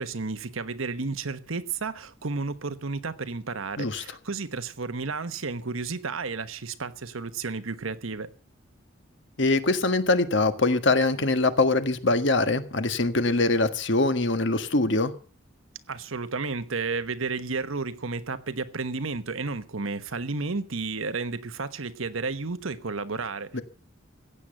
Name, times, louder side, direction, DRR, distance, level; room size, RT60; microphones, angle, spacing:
voice 1, 0.0-8.3 15.9-23.6, right 4 dB, 80° right, 1.1 m, -32 dB
voice 2, 9.4-15.1 23.5-23.6, left 2 dB, 60° left, 1.5 m, -23 dB
15.5 x 9.1 x 7.8 m
head